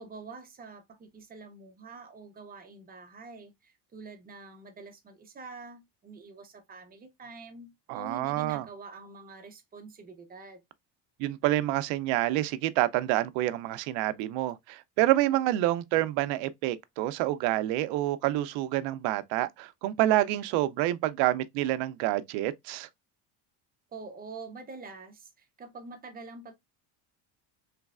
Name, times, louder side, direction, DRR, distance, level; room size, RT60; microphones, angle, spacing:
voice 1, 0.0-10.6 23.9-26.5, right 4 dB, 20° right, 0.6 m, -46 dB
voice 2, 7.9-8.7 11.2-22.9, right 15 dB, 75° right, 0.6 m, -28 dB
3.2 x 3.1 x 2.3 m
cardioid pair, 150°, 46 cm